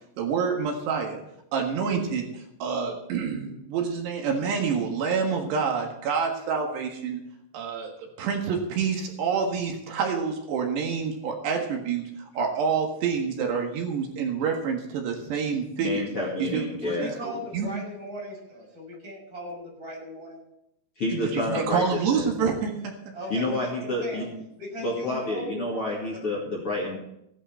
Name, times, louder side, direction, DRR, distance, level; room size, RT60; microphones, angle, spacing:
voice 1, 0.2-1.2 1.5-7.2 7.5-12.0 12.4-16.1 16.4-16.6 16.9-17.7 21.1-23.0, right 6 dB, 75° right, 2 dB, 3.7 m, -27 dB
voice 2, 15.8-17.2 21.0-22.3 23.3-24.3 24.8-27.0, left 2 dB, 40° left, -3 dB, 2.6 m, -29 dB
voice 3, 16.8-20.4 23.1-24.3 24.6-26.2, equal, 20° right, -3 dB, 6.2 m, -38 dB
16.5 x 11.0 x 4.5 m, 0.80 s
omnidirectional pair, 5.0 m